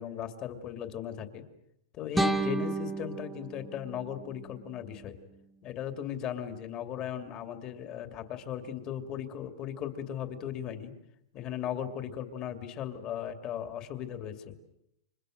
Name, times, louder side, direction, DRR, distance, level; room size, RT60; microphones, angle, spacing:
voice 1, 0.0-1.5 1.9-5.2 5.6-10.9 11.3-14.5, left 9 dB, 30° left, 8 dB, 2.5 m, -37 dB
sound 1, 2.1-5.2, right 2 dB, ahead, 1.3 m, -33 dB
30.0 x 26.5 x 6.6 m, 0.79 s
supercardioid pair, 160°, 2 cm